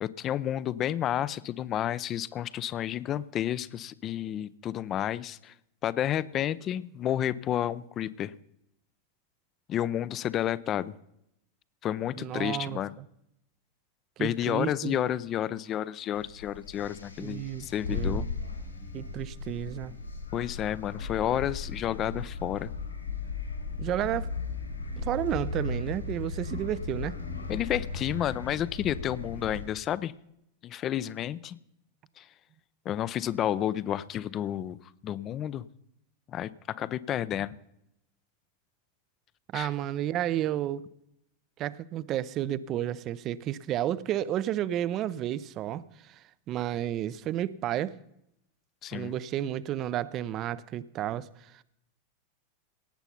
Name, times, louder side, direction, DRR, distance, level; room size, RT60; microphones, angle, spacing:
voice 1, 0.0-5.5 5.8-8.3 9.7-10.9 11.8-12.9 14.2-18.3 20.3-22.7 27.5-30.1 30.6-31.6 32.2-32.3 32.8-34.8 35.0-35.6 36.3-37.6 39.5-39.7 48.8-49.2, left 11 dB, 30° left, 0.5 m, -31 dB
voice 2, 12.2-12.8 14.2-15.0 17.2-18.2 18.9-19.9 23.8-24.3 25.0-27.2 39.5-40.8 41.6-47.9 48.9-51.6, right 12 dB, 35° right, 0.6 m, -32 dB
sound 1, 16.1-29.7, left 4 dB, 80° left, 4.6 m, -36 dB
17.5 x 8.1 x 5.7 m
figure-of-eight pair, 90°, 0 cm